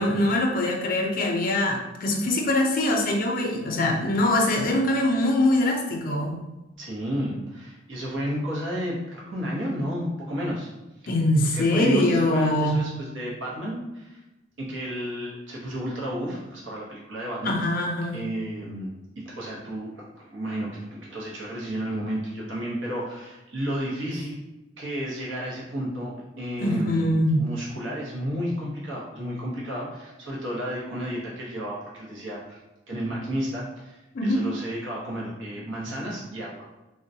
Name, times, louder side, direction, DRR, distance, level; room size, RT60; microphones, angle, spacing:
voice 1, 0.0-6.4 11.1-12.8 17.4-18.2 26.6-27.4 34.1-34.4, left 1 dB, 50° left, 1 dB, 0.4 m, -23 dB
voice 2, 6.8-10.7 11.0-11.1 11.4-14.2 14.6-17.6 18.1-18.9 19.2-24.4 24.8-27.1 27.4-32.6 32.9-36.7, equal, 85° right, -4 dB, 0.8 m, -32 dB
3.7 x 2.1 x 2.6 m, 1.0 s
head